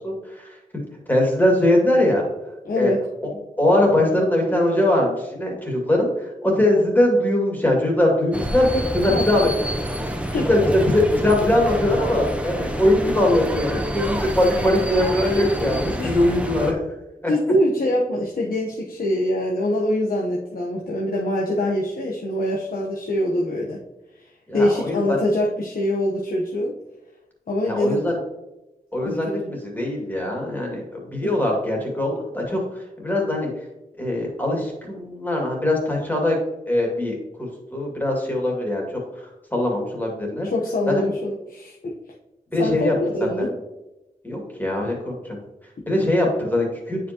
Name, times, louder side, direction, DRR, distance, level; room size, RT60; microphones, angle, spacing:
voice 1, 0.0-0.8 1.1-2.3 2.8-2.9 3.6-8.7 8.9-9.5 10.5-16.8 17.2-17.3 24.5-25.2 27.6-28.2 28.9-33.5 34.0-36.4 36.7-38.8 39.5-40.5 40.9-41.1 42.5-42.9 43.4-43.5 44.2-45.4 45.9-47.0, left 1 dB, 10° left, -1 dB, 2.2 m, -21 dB
voice 2, 2.6-3.0 8.9-9.2 10.3-10.5 16.0-16.2 17.3-23.8 24.5-26.7 27.5-28.1 29.0-29.7 31.2-31.3 40.4-41.9 42.6-43.5, left 1 dB, 70° left, -4 dB, 1.0 m, -24 dB
sound 1, 8.3-16.7, right 1 dB, 10° right, 0.7 m, -27 dB
9.0 x 5.1 x 2.9 m, 0.97 s
wide cardioid pair, 85°, 15 cm